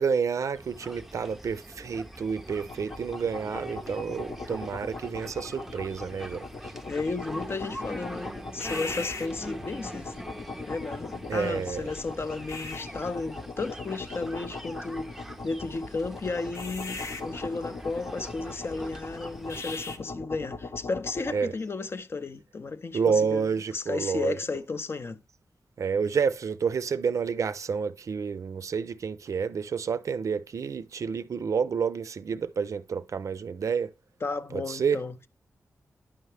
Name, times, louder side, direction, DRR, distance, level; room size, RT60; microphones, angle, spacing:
voice 1, 0.0-6.5 11.3-11.9 21.3-21.5 22.9-24.4 25.8-33.9 34.5-35.0, right 6 dB, 65° right, 0.4 m, -29 dB
sound 1, 0.5-19.6, right 1 dB, 5° right, 0.5 m, -43 dB
sound 2, 2.2-21.4, left 3 dB, 60° left, 0.9 m, -39 dB
voice 2, 6.8-10.1 10.7-23.5 23.7-25.2 34.2-35.3, left 3 dB, 45° left, 0.5 m, -33 dB
10.0 x 5.6 x 3.3 m
wide cardioid pair, 85°, 6 cm